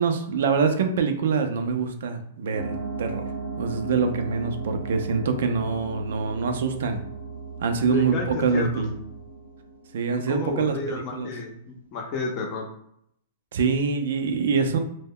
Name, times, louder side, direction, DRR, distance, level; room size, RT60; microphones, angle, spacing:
voice 1, 0.0-3.3 3.6-7.0 7.6-8.9 9.9-11.3 13.5-14.8, right 5 dB, 70° right, 6 dB, 0.4 m, -25 dB
sound 1, 2.5-10.7, right 4 dB, 90° right, 0.9 m, -36 dB
voice 2, 7.9-8.8 10.3-12.7, left 4 dB, 40° left, 2 dB, 0.6 m, -31 dB
2.1 x 2.1 x 3.6 m, 0.72 s
hypercardioid pair, 125°, 0 cm